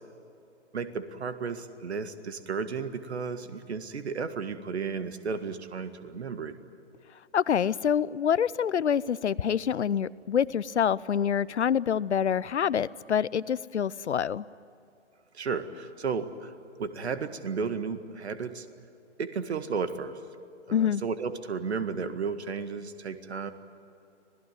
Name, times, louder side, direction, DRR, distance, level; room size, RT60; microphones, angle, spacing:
voice 1, 0.7-6.6 15.3-16.5 16.8-18.7 19.2-20.2 20.7-23.5, right 5 dB, 60° right, 11 dB, 1.9 m, -33 dB
voice 2, 7.3-14.5 20.7-21.0, left 8 dB, 70° left, 20 dB, 0.7 m, -26 dB
26.5 x 18.0 x 9.6 m, 2.6 s
figure-of-eight pair, 135°, 36 cm